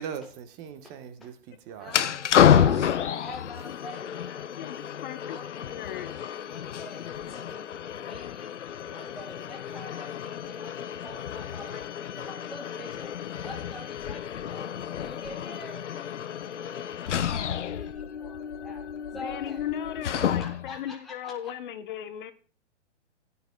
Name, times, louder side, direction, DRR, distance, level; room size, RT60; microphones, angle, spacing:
voice 1, 0.0-2.2 2.5-2.9, right 7 dB, 25° right, 1.2 m, -40 dB
voice 2, 1.8-2.8 3.2-13.2 13.4-18.8 19.1-19.7 20.1-21.5, left 1 dB, ahead, 0.8 m, -46 dB
sound 1, 1.9-20.8, left 9 dB, 75° left, 0.7 m, -29 dB
voice 3, 4.6-5.4 5.7-6.1 19.2-22.3, left 11 dB, 45° left, 0.9 m, -36 dB
16.5 x 9.9 x 2.2 m
hypercardioid pair, 125°, 36 cm